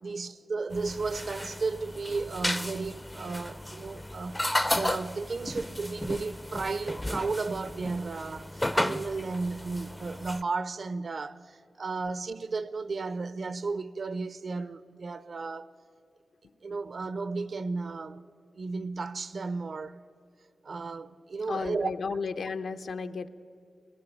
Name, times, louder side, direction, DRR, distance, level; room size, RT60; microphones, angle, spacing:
voice 1, 0.0-15.7 16.6-18.2 18.6-20.0 20.6-21.9, right 4 dB, 55° right, 0.6 m, -34 dB
sound 1, 0.7-10.4, left 1 dB, 10° left, 0.4 m, -34 dB
voice 2, 21.5-23.3, left 5 dB, 75° left, 0.7 m, -33 dB
20.0 x 16.0 x 9.1 m
wide cardioid pair, 100°, 0 cm